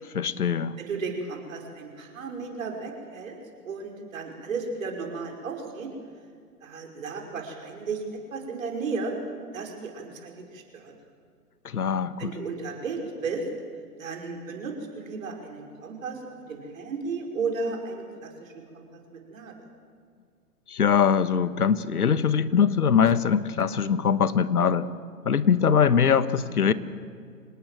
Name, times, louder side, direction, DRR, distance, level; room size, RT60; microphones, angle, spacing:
voice 1, 0.1-0.8 11.6-12.3 20.7-24.9 25.2-26.7, left 7 dB, 70° left, 15 dB, 1.3 m, -22 dB
voice 2, 0.8-3.4 3.6-5.9 6.6-8.0 8.3-9.1 9.5-10.9 12.2-13.4 14.0-16.2 16.5-18.8 19.1-19.5, right 4 dB, 55° right, 2 dB, 5.3 m, -34 dB
26.0 x 19.0 x 7.6 m, 2.2 s
figure-of-eight pair, 125°, 47 cm